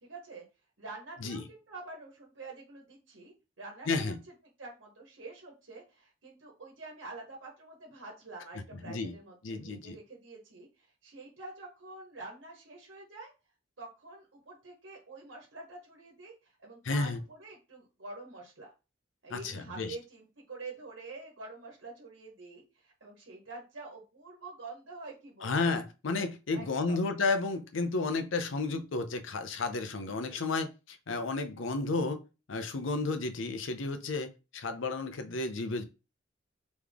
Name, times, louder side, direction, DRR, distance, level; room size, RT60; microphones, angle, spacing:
voice 1, 0.0-0.4 0.8-13.3 13.8-18.7 19.2-25.7 26.5-27.0 30.0-30.5, right 3 dB, 80° right, -1 dB, 1.2 m, -47 dB
voice 2, 3.9-4.2 8.8-9.1 9.4-10.0 16.8-17.2 19.3-20.0 25.4-32.2 32.5-35.8, left 3 dB, 85° left, 9 dB, 0.6 m, -32 dB
3.5 x 3.1 x 3.5 m, 0.30 s
head